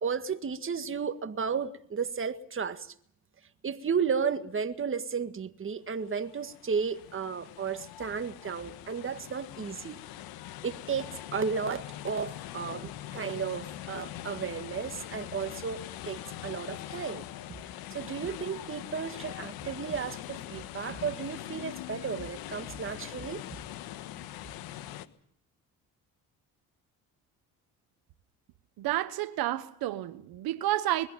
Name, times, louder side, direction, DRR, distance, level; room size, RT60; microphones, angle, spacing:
voice 1, 0.0-2.9 3.6-10.0 10.6-17.3 17.9-23.4, right 6 dB, 35° right, 1.8 m, -33 dB
sound 1, 6.0-25.1, left 13 dB, 85° left, 1.4 m, -42 dB
voice 2, 28.8-31.1, right 15 dB, 80° right, 1.3 m, -30 dB
21.5 x 16.0 x 9.1 m
supercardioid pair, 80°, 36 cm